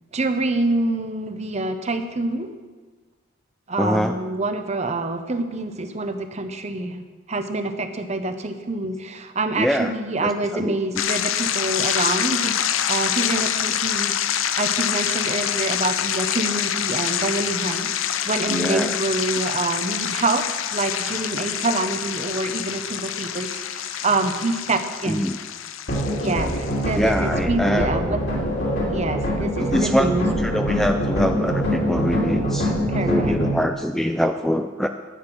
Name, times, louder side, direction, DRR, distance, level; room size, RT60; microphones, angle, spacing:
voice 1, 0.1-2.5 3.7-12.6 12.9-14.1 14.6-17.9 18.2-20.4 20.7-25.3 26.1-28.4 28.9-30.3 32.9-33.3, right 2 dB, 35° right, 8 dB, 0.9 m, -26 dB
voice 2, 3.8-4.2 9.6-9.9 10.2-10.8 18.5-19.0 25.1-25.4 27.0-28.0 29.4-32.7 33.1-34.9, equal, ahead, 6 dB, 0.3 m, -24 dB
sound 1, 11.0-27.1, left 9 dB, 80° left, 0.7 m, -26 dB
sound 2, 25.9-33.6, equal, 55° left, 3.1 m, -24 dB
12.5 x 9.6 x 6.1 m, 1.4 s
head